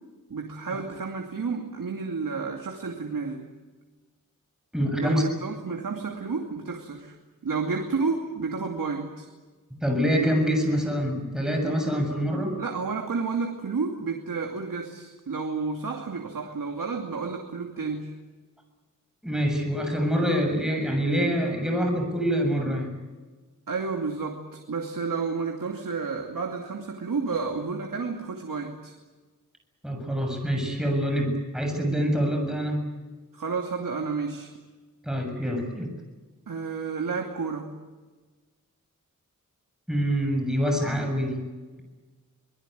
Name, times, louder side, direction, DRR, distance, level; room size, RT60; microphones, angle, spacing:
voice 1, 0.3-3.5 5.0-7.2 7.4-9.3 12.6-18.1 23.7-28.9 33.3-34.5 36.5-37.7, right 4 dB, 80° right, 2 dB, 2.7 m, -31 dB
voice 2, 4.7-5.2 9.8-12.5 19.2-22.9 29.8-32.8 35.0-35.9 39.9-41.5, equal, ahead, 3 dB, 7.0 m, -25 dB
25.5 x 20.5 x 9.3 m, 1.3 s
wide cardioid pair, 100°, 32 cm